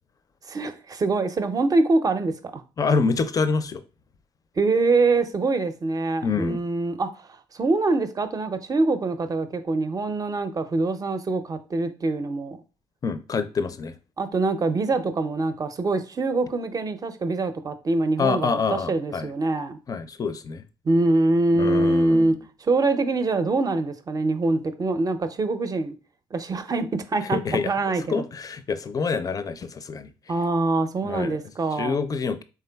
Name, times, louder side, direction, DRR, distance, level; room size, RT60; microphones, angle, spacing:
voice 1, 0.5-2.6 4.6-12.6 14.2-19.8 20.8-22.4 22.6-25.9 26.3-28.2 30.3-32.0, right 3 dB, 35° right, 0.6 m, -24 dB
voice 2, 2.8-3.8 6.2-6.6 13.0-13.9 18.2-19.3 19.9-20.6 21.5-22.4 27.3-27.7 28.1-30.1 31.0-31.4 31.8-32.4, left 5 dB, 35° left, 0.5 m, -26 dB
3.7 x 3.4 x 2.3 m
hypercardioid pair, 55°, 11 cm